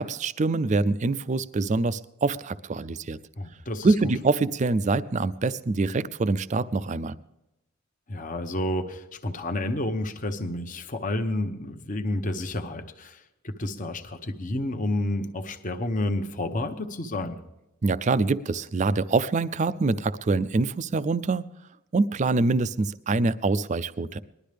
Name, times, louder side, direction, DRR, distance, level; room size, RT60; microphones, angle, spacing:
voice 1, 0.0-3.2 3.8-7.1 17.8-21.5 21.9-24.2, right 3 dB, 35° right, 15 dB, 0.4 m, -25 dB
voice 2, 3.4-4.1 8.1-17.4, left 1 dB, 35° left, 6 dB, 0.9 m, -30 dB
20.0 x 12.0 x 3.4 m, 0.90 s
head